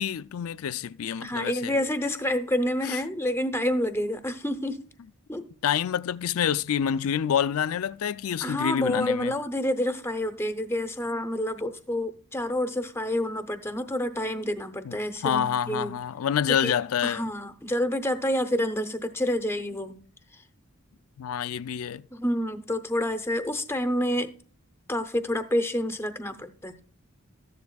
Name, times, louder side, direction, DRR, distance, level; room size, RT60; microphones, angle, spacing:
voice 1, 0.0-1.7 2.8-3.0 5.6-9.4 14.8-14.9 15.2-17.3 21.2-22.0, left 8 dB, 75° left, 0.4 m, -27 dB
voice 2, 1.2-4.8 5.3-5.5 8.4-16.0 16.5-16.7 17.0-20.0 22.1-24.3 24.9-26.8, left 1 dB, 10° left, 0.7 m, -28 dB
14.0 x 10.5 x 2.3 m
head